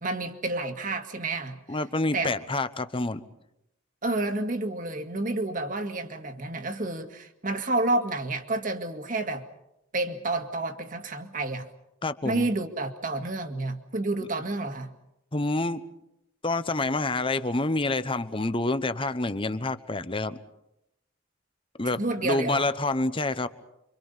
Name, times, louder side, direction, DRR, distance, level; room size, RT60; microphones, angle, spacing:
voice 1, 0.0-1.6 2.1-2.4 4.0-9.5 9.9-11.7 12.2-14.9 21.8-22.7, right 2 dB, 40° right, 6 dB, 2.0 m, -30 dB
voice 2, 1.7-3.2 12.0-12.5 15.3-15.8 16.4-20.4 21.8-23.5, left 2 dB, 25° left, 12 dB, 1.0 m, -27 dB
28.5 x 25.0 x 5.6 m, 0.84 s
head